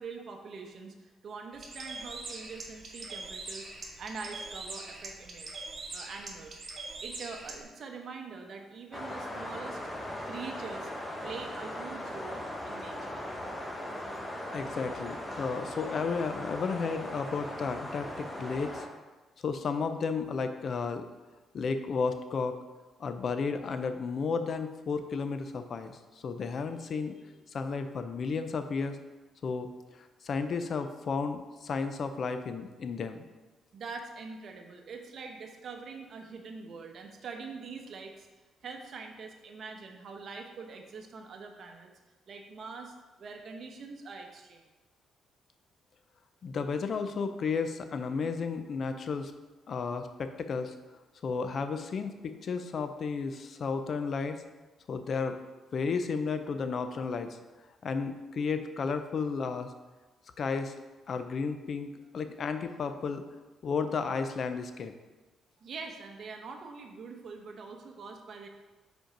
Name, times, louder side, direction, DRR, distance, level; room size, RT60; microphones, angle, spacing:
voice 1, 0.0-5.6 5.9-6.6 7.0-9.8 10.3-10.9 11.2-13.2 33.7-38.3 38.6-41.9 42.3-44.6 65.6-68.5, right 4 dB, 55° right, 3 dB, 0.9 m, -44 dB
Bird, 1.5-7.6, right 3 dB, 40° right, 1.3 m, -42 dB
sound 1, 8.9-18.9, left 1 dB, 10° left, 1.0 m, -39 dB
voice 2, 14.5-18.9 19.4-21.1 21.5-22.6 23.0-29.0 29.4-33.3 46.4-49.3 49.7-50.8 51.2-54.4 54.9-55.4 55.7-57.4 57.8-59.7 60.4-60.7 61.1-63.2 63.6-64.9, left 5 dB, 55° left, 9 dB, 0.5 m, -33 dB
5.2 x 4.5 x 5.1 m, 1.2 s
cardioid pair, 90°, 0 cm